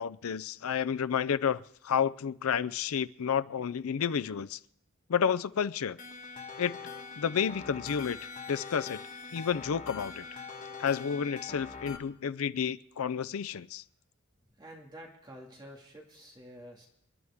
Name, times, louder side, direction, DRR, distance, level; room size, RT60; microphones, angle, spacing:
voice 1, 0.0-4.6 5.1-6.0 6.6-6.8 7.2-8.2 8.5-9.0 9.3-10.3 10.8-13.8, left 7 dB, 85° left, 15 dB, 0.5 m, -30 dB
sound 1, 6.0-12.0, left 5 dB, 35° left, 1.4 m, -43 dB
voice 2, 14.4-16.9, equal, 20° right, -1 dB, 2.1 m, -49 dB
28.0 x 11.0 x 3.6 m, 0.73 s
head